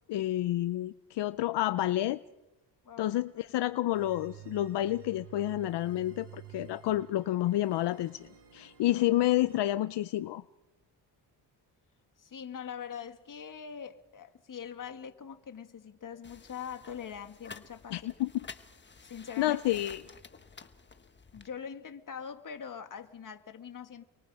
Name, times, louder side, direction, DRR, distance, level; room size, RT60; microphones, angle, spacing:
voice 1, 0.1-2.2 3.0-10.4 17.9-18.4 19.4-20.0, left 14 dB, 75° left, 0.7 m, -29 dB
sound 1, 3.9-9.6, right 12 dB, 75° right, 5.7 m, -52 dB
voice 2, 12.2-18.1 19.0-19.8 21.3-24.0, left 7 dB, 50° left, 2.0 m, -43 dB
sound 2, 16.2-21.5, left 5 dB, 25° left, 1.4 m, -51 dB
29.5 x 23.0 x 4.9 m
cardioid pair, 95°, 42 cm